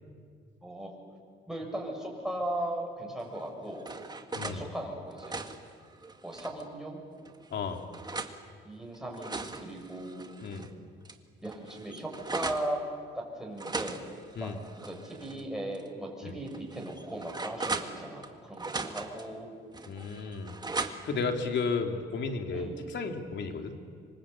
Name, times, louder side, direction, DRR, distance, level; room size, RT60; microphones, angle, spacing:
voice 1, 0.6-0.9 1.5-3.9 4.4-5.4 6.2-7.0 8.6-10.4 11.4-12.8 13.1-14.0 14.3-14.5 14.8-19.5 21.0-21.2 22.5-22.8 23.5-23.7, right 1 dB, ahead, 0 dB, 7.6 m, -38 dB
sound 1, 3.3-4.6 5.0-6.7 7.3-8.4 8.9-10.7 11.1-11.2 11.4-12.7 13.6-15.4 15.7-15.9 16.5-18.3 18.6-19.3 19.7-21.2, right 3 dB, 20° right, 1.8 m, -38 dB
voice 2, 4.3-4.7 7.5-7.8 10.4-10.7 14.4-14.6 16.2-16.3 19.9-20.6 21.0-23.8, left 4 dB, 65° left, 4 dB, 3.0 m, -33 dB
26.5 x 24.0 x 8.5 m, 2.1 s
cardioid pair, 90°, 20 cm